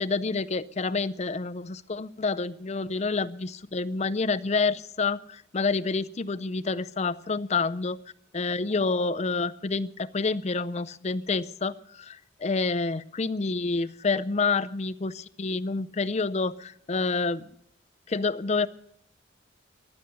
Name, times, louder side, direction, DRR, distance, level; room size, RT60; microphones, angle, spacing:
voice 1, 0.0-8.0 8.3-17.6 18.1-18.7, left 4 dB, 35° left, 15 dB, 0.5 m, -28 dB
15.0 x 11.5 x 6.8 m, 0.70 s
head